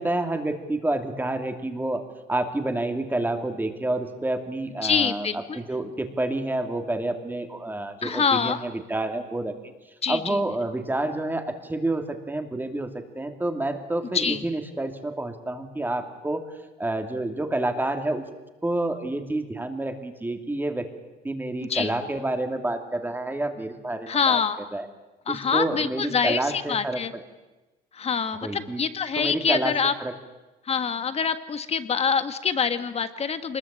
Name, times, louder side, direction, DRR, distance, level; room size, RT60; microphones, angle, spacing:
voice 1, 0.0-9.5 10.1-16.4 16.8-18.2 18.6-20.9 21.2-24.4 24.7-24.9 25.3-27.0 28.4-28.8 29.1-29.7 30.0-30.1, right 2 dB, 10° right, 6 dB, 2.7 m, -28 dB
voice 2, 4.8-5.6 8.0-8.6 10.0-10.4 14.1-14.4 21.6-21.9 24.1-24.6 25.3-27.1 27.9-29.9 30.6-33.6, left 6 dB, 35° left, 11 dB, 1.7 m, -25 dB
24.0 x 21.0 x 8.9 m, 1.1 s
cardioid pair, 110°, 17 cm